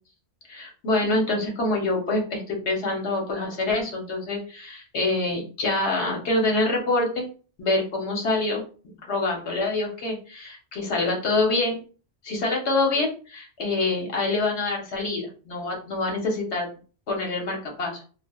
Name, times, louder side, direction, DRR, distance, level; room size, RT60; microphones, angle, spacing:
voice 1, 0.5-7.3 7.6-8.6 9.1-11.8 12.2-16.7 17.1-18.0, left 2 dB, 75° left, 0 dB, 1.2 m, -26 dB
3.2 x 2.4 x 2.3 m, 0.38 s
omnidirectional pair, 1.1 m